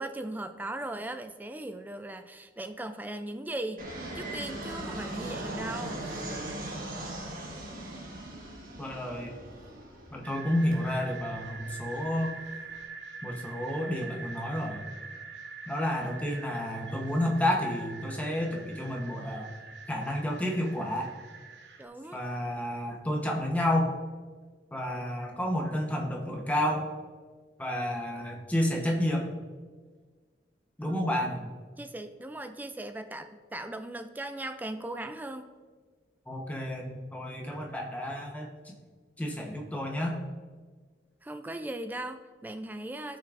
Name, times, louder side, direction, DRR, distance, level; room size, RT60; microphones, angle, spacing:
voice 1, 0.0-3.9 4.1-6.4 21.8-22.2 30.9-31.4 31.8-35.5 41.2-43.2, right 1 dB, 10° right, 8 dB, 0.3 m, -38 dB
Fixed-wing aircraft airplane, 3.8-12.8, right 1 dB, 50° right, 1.4 m, -40 dB
voice 2, 8.8-9.3 10.1-12.4 13.2-14.8 15.7-19.6 19.9-21.1 22.1-24.0 24.7-26.9 27.6-29.3 30.8-31.4 36.3-38.7 39.2-40.2, left 1 dB, 10° left, 0 dB, 0.9 m, -30 dB
sound 1, 10.2-21.9, right 4 dB, 90° right, 0.9 m, -45 dB
13.5 x 5.9 x 2.5 m, 1.5 s
head